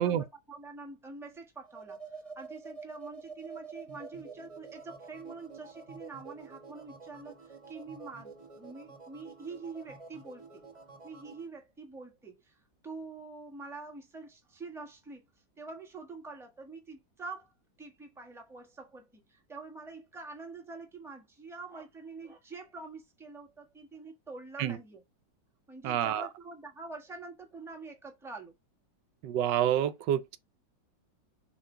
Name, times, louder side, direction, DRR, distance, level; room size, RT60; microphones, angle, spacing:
voice 1, 0.0-10.6 11.0-15.2 15.6-17.5 17.8-25.0 25.7-28.5, right 3 dB, ahead, 1.1 m, -46 dB
sound 1, 1.6-11.5, right 4 dB, 30° right, 0.6 m, -48 dB
voice 2, 25.8-26.3 29.2-30.4, right 10 dB, 80° right, 1.3 m, -28 dB
7.1 x 2.6 x 5.5 m
omnidirectional pair, 2.0 m